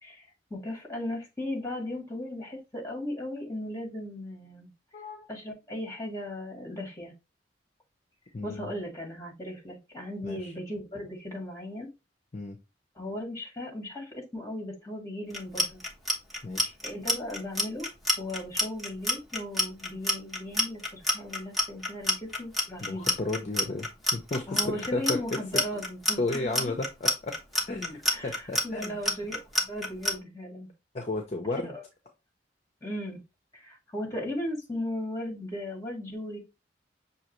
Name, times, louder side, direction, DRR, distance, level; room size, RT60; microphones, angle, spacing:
voice 1, 0.0-4.7 5.3-7.1 8.4-11.9 13.0-15.8 16.8-17.9 18.2-23.1 24.5-26.7 28.1-30.7 31.6-31.8 32.8-33.2 33.5-36.4, left 1 dB, 15° left, 1.8 m, -37 dB
voice 2, 4.9-5.3 8.3-8.7 10.2-10.5 12.3-12.6 16.4-16.8 22.8-25.2 25.7-25.8 26.2-27.3 27.7-29.0 30.9-31.7, left 2 dB, 35° left, 0.6 m, -33 dB
Clock, 15.3-30.1, left 1 dB, ahead, 1.0 m, -27 dB
6.3 x 2.8 x 3.0 m
head